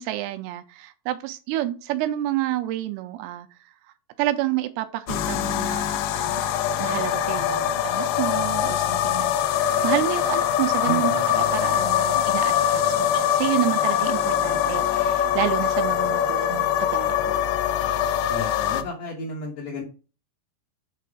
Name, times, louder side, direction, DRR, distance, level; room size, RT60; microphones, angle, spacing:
voice 1, 0.0-3.5 4.2-6.4 6.8-17.4, right 14 dB, 85° right, 2.6 m, -29 dB
sound 1, 5.1-18.8, left 10 dB, 90° left, 2.7 m, -23 dB
voice 2, 10.8-11.3 18.3-19.8, left 1 dB, 65° left, 1.6 m, -33 dB
6.9 x 3.7 x 4.8 m
omnidirectional pair, 4.6 m